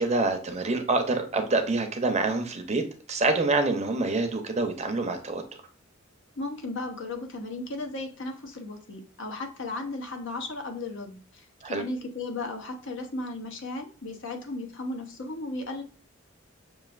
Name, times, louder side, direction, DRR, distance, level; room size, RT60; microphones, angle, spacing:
voice 1, 0.0-2.8 3.1-5.4 11.6-11.8, right 3 dB, 35° right, 5 dB, 0.7 m, -26 dB
voice 2, 6.4-15.8, left 2 dB, 65° left, 3 dB, 0.9 m, -35 dB
6.2 x 2.5 x 2.4 m, 0.43 s
head